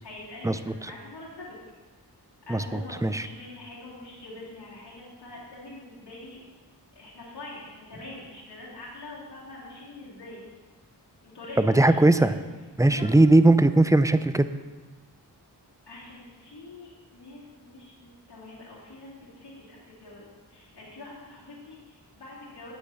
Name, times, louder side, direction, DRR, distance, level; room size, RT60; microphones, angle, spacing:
voice 1, 0.0-1.5 2.5-6.4 6.9-10.4 11.2-12.3 12.8-13.0 15.9-22.7, left 2 dB, 75° left, -8 dB, 2.7 m, -44 dB
voice 2, 2.5-3.2 11.6-12.4 12.8-14.5, right 2 dB, 10° right, 12 dB, 0.4 m, -19 dB
9.0 x 6.8 x 5.6 m, 1.3 s
cardioid pair, 40°, 40 cm